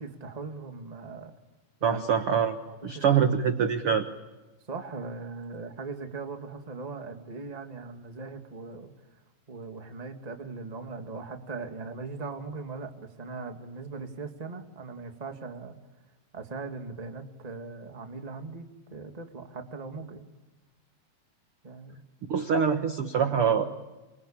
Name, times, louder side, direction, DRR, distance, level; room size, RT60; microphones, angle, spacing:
voice 1, 0.0-1.3 1.8-2.1 2.7-3.3 4.7-8.9 9.5-15.8 16.3-20.2 21.6-22.0, right 4 dB, 15° right, 5 dB, 1.3 m, -39 dB
voice 2, 1.8-2.6 2.8-4.0 22.3-23.7, right 7 dB, 65° right, 7 dB, 1.4 m, -24 dB
28.5 x 23.5 x 8.8 m, 1.1 s
omnidirectional pair, 4.5 m